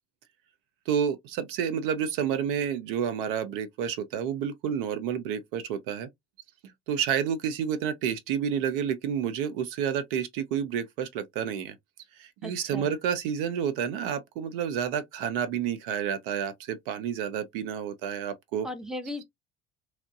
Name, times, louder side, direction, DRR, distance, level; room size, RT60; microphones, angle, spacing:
voice 1, 0.9-6.1 6.9-11.8 12.1-18.7, right 8 dB, 55° right, 0.6 m, -30 dB
voice 2, 12.4-12.9 18.6-19.2, left 1 dB, ahead, 0.5 m, -37 dB
2.9 x 2.1 x 2.6 m
figure-of-eight pair, 60°, 32 cm